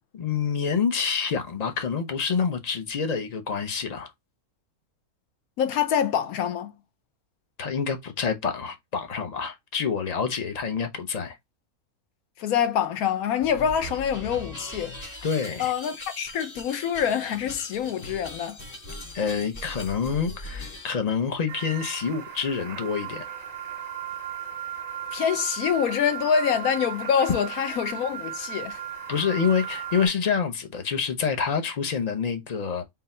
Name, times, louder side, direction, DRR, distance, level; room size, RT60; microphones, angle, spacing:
voice 1, 0.1-4.1 7.6-11.4 15.2-15.7 19.1-23.3 29.1-32.8, left 6 dB, 45° left, 0.5 m, -27 dB
voice 2, 5.6-6.7 12.4-14.9 15.6-18.6 25.1-28.8, left 8 dB, 75° left, 1.2 m, -25 dB
sound 1, 13.4-20.9, left 1 dB, 30° left, 1.1 m, -40 dB
sound 2, 21.5-30.1, right 9 dB, 80° right, 0.3 m, -36 dB
3.8 x 2.7 x 4.2 m
omnidirectional pair, 1.5 m